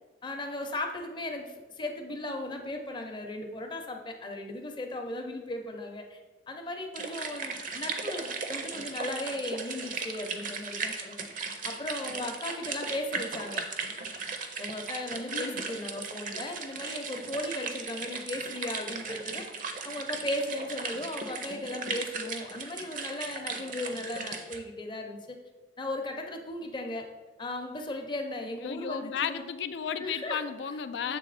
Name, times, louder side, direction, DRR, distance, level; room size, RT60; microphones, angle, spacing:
voice 1, 0.2-6.2 6.5-11.3 11.6-13.6 14.6-19.4 19.8-25.4 25.8-27.1 27.4-29.4 30.0-30.4 31.1-31.2, left 1 dB, 25° left, 4 dB, 0.7 m, -36 dB
sound 1, 7.0-24.6, right 4 dB, 45° right, 0.6 m, -37 dB
voice 2, 15.3-15.6 28.6-31.2, left 7 dB, 65° left, 11 dB, 0.3 m, -34 dB
7.5 x 3.4 x 4.0 m, 1.2 s
head